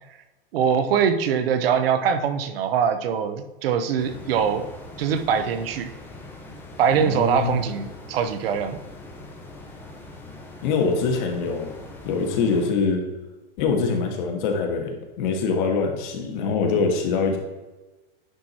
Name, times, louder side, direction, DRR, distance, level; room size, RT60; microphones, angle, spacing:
voice 1, 0.5-4.6 5.0-5.9 6.8-8.8, right 7 dB, 75° right, 10 dB, 1.0 m, -23 dB
sound 1, 4.0-12.7, left 2 dB, 5° left, 0.9 m, -42 dB
voice 2, 6.9-7.6 10.6-11.7 12.0-13.0 13.6-17.4, left 4 dB, 50° left, 3 dB, 1.7 m, -24 dB
10.0 x 4.6 x 4.3 m, 1.1 s
supercardioid pair, 160°, 30 cm